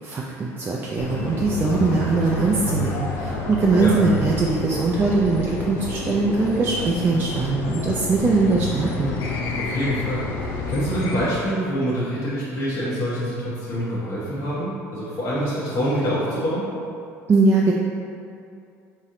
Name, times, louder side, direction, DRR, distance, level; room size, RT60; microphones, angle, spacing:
voice 1, 0.0-9.2 17.3-17.7, right 3 dB, 30° right, -3 dB, 0.4 m, -21 dB
sound 1, 1.0-11.2, left 3 dB, 75° left, 0.6 m, -29 dB
voice 2, 9.6-10.3 10.7-16.7, equal, 50° left, -10 dB, 1.1 m, -25 dB
4.1 x 3.1 x 3.7 m, 2.5 s
supercardioid pair, 85°, 7 cm